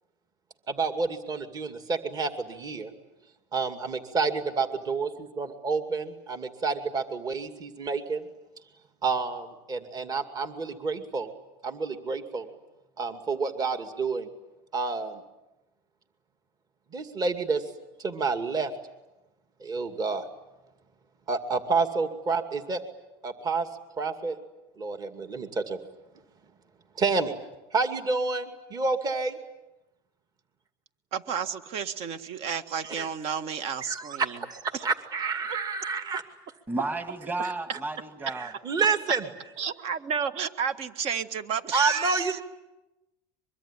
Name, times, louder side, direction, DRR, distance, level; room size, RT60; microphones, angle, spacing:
voice 1, 0.7-2.9 3.5-8.3 9.0-11.3 11.6-12.5 13.0-14.3 14.7-15.2 16.9-17.7 18.0-18.7 19.6-20.3 21.3-22.8 23.2-23.7 24.0-24.4 24.8-25.8 27.0-27.3 27.7-29.4 32.8-33.1 33.8-36.2 37.4-37.8 38.2-39.2 41.7-42.4, right 4 dB, 30° right, 2.4 m, -29 dB
voice 2, 31.1-34.4 39.6-42.4, right 7 dB, 55° right, 1.7 m, -31 dB
voice 3, 36.7-38.5, right 2 dB, 15° right, 2.1 m, -32 dB
24.0 x 23.0 x 10.0 m
supercardioid pair, 110°, 12 cm